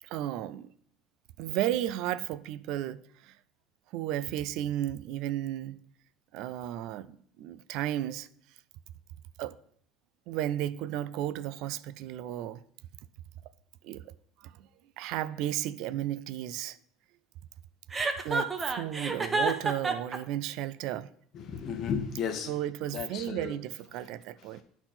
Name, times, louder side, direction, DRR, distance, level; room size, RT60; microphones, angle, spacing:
voice 1, 0.0-0.7 1.4-3.3 3.9-5.8 6.3-8.3 9.4-9.6 10.3-12.6 13.8-14.1 14.4-14.7 15.0-16.8 18.2-21.1 22.5-24.6, right 12 dB, 65° right, 0.3 m, -34 dB
Chuckle chortle, 17.9-20.2, right 3 dB, 20° right, 0.7 m, -29 dB
voice 2, 21.3-22.5 22.9-23.6 24.5-24.6, left 7 dB, 50° left, 1.0 m, -34 dB
9.7 x 4.0 x 4.2 m
cardioid pair, 125°, 0 cm